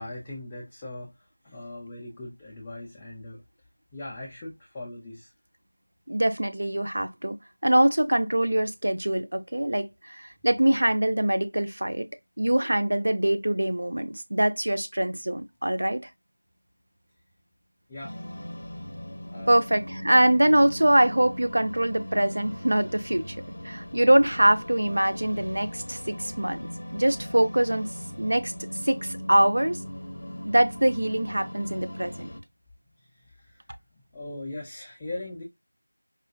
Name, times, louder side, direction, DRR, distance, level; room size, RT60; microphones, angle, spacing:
voice 1, 0.0-3.4 3.9-5.3 17.9-18.2 19.3-19.6 33.0-33.6 33.9-35.4, left 2 dB, 10° left, 0.3 m, -40 dB
voice 2, 6.1-7.4 7.6-12.1 12.4-16.1 19.5-23.4 23.6-26.7 26.9-27.9 28.2-28.5 28.8-29.8 30.4-32.3, right 1 dB, 55° right, 0.5 m, -23 dB
sound 1, 18.0-32.4, equal, 50° left, 0.6 m, -39 dB
4.3 x 2.4 x 2.3 m
figure-of-eight pair, 175°, 0 cm